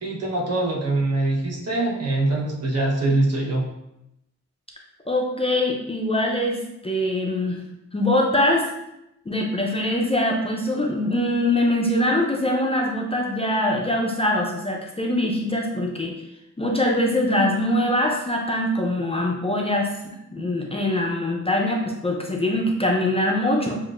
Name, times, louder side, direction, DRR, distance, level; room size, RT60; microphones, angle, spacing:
voice 1, 0.0-3.7, right 2 dB, 55° right, -2 dB, 1.0 m, -23 dB
voice 2, 5.1-7.6 7.9-8.7 9.3-16.1 16.6-19.9 20.3-23.8, left 1 dB, 20° left, -1 dB, 0.4 m, -23 dB
7.0 x 2.4 x 2.4 m, 0.86 s
wide cardioid pair, 180°, 29 cm